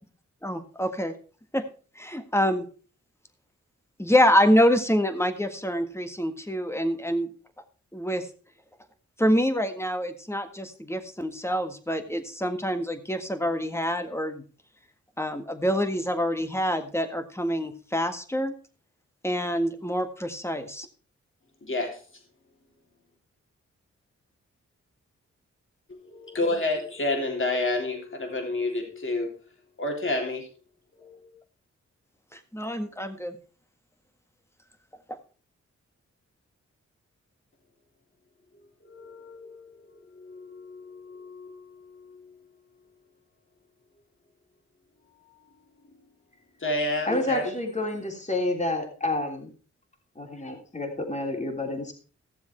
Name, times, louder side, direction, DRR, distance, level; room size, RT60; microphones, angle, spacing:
voice 1, 0.4-1.1 1.5-1.6 1.9-2.7 4.0-7.3 7.9-8.3 9.2-14.4 15.2-18.5 19.2-20.9 32.3-33.4 35.1-35.2, equal, 10° left, 8 dB, 1.7 m, -26 dB
voice 2, 21.6-22.0 26.0-29.3 29.8-30.5 30.9-31.3 38.8-41.6 42.1-42.2 46.6-47.5, left 2 dB, 45° left, 2 dB, 3.4 m, -30 dB
voice 3, 47.1-49.5 50.1-51.9, left 2 dB, 25° left, 2 dB, 3.4 m, -29 dB
15.0 x 7.1 x 4.5 m, 0.39 s
cardioid pair, 60°, 29 cm